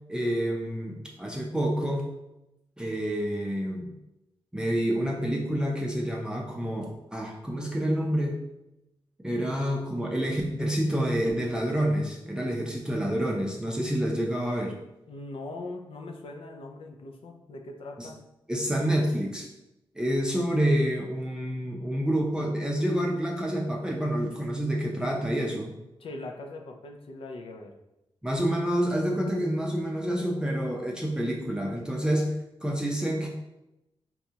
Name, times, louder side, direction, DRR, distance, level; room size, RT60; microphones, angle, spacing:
voice 1, 0.1-2.1 2.8-3.9 4.5-8.4 9.2-14.7 18.0-18.1 18.5-19.5 20.0-25.7 28.2-32.3 32.6-33.3, equal, 10° right, -2 dB, 0.5 m, -28 dB
voice 2, 15.1-18.2 26.0-27.7, left 2 dB, 75° left, 3 dB, 0.5 m, -41 dB
4.0 x 2.3 x 2.8 m, 0.92 s
cardioid pair, 85°, 9 cm